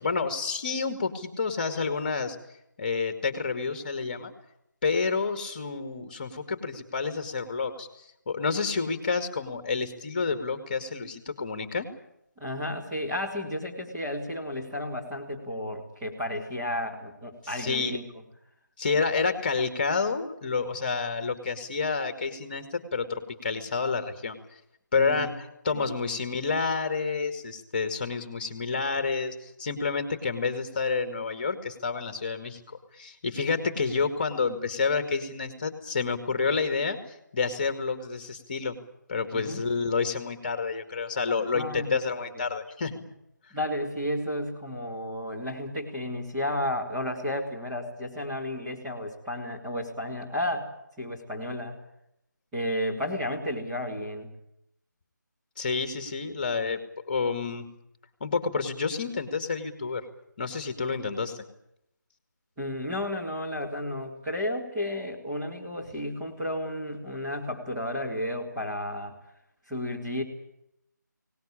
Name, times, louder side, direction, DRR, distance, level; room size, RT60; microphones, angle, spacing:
voice 1, 0.0-2.4 2.8-4.3 4.8-11.9 17.5-18.0 18.8-24.4 24.9-37.0 37.3-38.8 39.1-43.0 55.6-57.7 58.2-60.1 60.4-61.4, left 4 dB, 30° left, 9 dB, 2.3 m, -29 dB
voice 2, 12.4-18.0 25.0-25.3 25.7-25.9 39.3-39.6 41.5-42.4 43.5-51.7 52.5-54.3 62.6-69.2 69.7-70.2, left 1 dB, 10° right, -6 dB, 2.8 m, -32 dB
23.0 x 19.0 x 8.8 m, 0.79 s
figure-of-eight pair, 160°, 10 cm